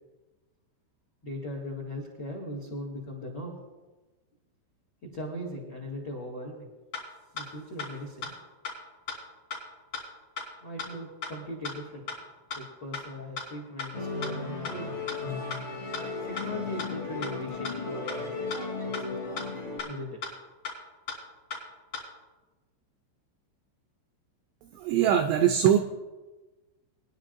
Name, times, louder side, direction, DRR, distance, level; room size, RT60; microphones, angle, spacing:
voice 1, 1.2-3.6 5.0-6.7 7.3-8.3 10.6-12.1 12.5-15.0 16.2-18.4 18.8-19.0 19.8-20.2, left 1 dB, 80° left, -2 dB, 0.9 m, -39 dB
sound 1, 6.9-7.0 7.4-7.5 7.8-7.9 8.2-8.3 8.6-8.7 9.1-9.2 9.5-9.6 9.9-10.0 10.4-10.5 10.8-10.9 11.2-11.3 11.6-11.7 12.1-12.2 12.5-12.6 12.9-13.0 13.4-13.5 13.8-13.9 14.2-14.3 14.6-14.7 15.1-15.2 15.5-15.6 15.9-16.0 16.4-16.5 16.8-16.9 17.2-17.3 17.6-17.7 18.1-18.2 18.5-18.6 18.9-19.0 19.4-19.5 19.8-19.9 20.2-20.3 20.6-20.7 21.1-21.2 21.5-21.6 21.9-22.0, left 5 dB, 35° left, 4.0 m, -34 dB
Musical instrument, 13.9-19.8, left 3 dB, 10° left, 2.4 m, -35 dB
voice 2, 24.8-25.8, right 10 dB, 90° right, 6 dB, 2.4 m, -22 dB
23.0 x 10.5 x 2.6 m, 1.2 s
omnidirectional pair, 5.6 m